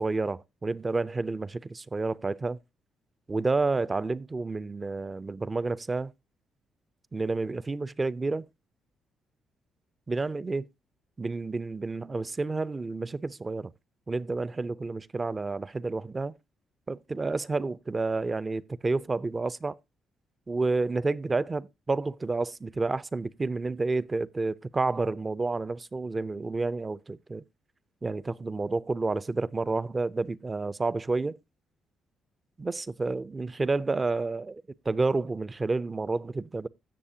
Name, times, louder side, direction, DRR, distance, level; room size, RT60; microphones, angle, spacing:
voice 1, 0.0-2.6 3.3-6.1 7.1-8.5 10.1-10.7 11.2-13.7 14.1-16.3 16.9-19.8 20.5-27.4 28.0-31.4 32.6-36.7, right 3 dB, 25° right, 0.4 m, -30 dB
16.0 x 6.5 x 2.7 m
cardioid pair, 90°, 0 cm